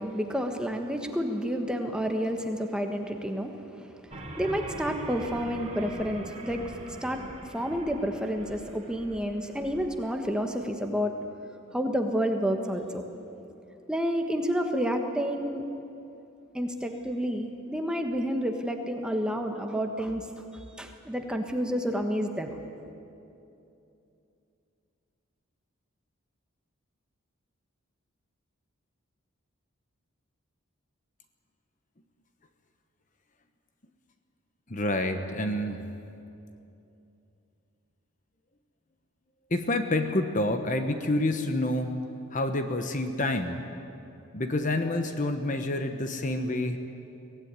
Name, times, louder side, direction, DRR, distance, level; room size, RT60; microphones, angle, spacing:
voice 1, 0.0-11.2 11.7-13.0 13.9-15.6 16.5-20.3 20.5-22.6, equal, 5° right, 4 dB, 1.3 m, -30 dB
sound 1, 4.1-9.8, right 1 dB, 30° right, 3.0 m, -42 dB
voice 2, 34.7-35.8 39.5-41.9 42.3-43.6 44.3-46.8, left 1 dB, 35° left, 7 dB, 1.1 m, -28 dB
23.0 x 17.0 x 9.7 m, 2.8 s
head